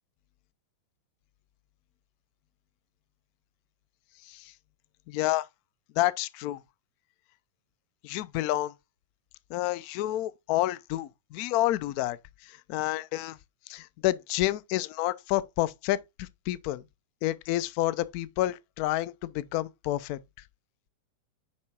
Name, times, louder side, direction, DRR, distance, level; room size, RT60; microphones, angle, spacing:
voice 1, 5.1-5.5 6.0-6.6 8.0-8.7 9.5-12.2 12.4-13.4 13.7-16.8 17.2-20.2, left 15 dB, 45° left, 0.5 m, -29 dB
9.6 x 3.7 x 2.9 m
figure-of-eight pair, 90°, 0 cm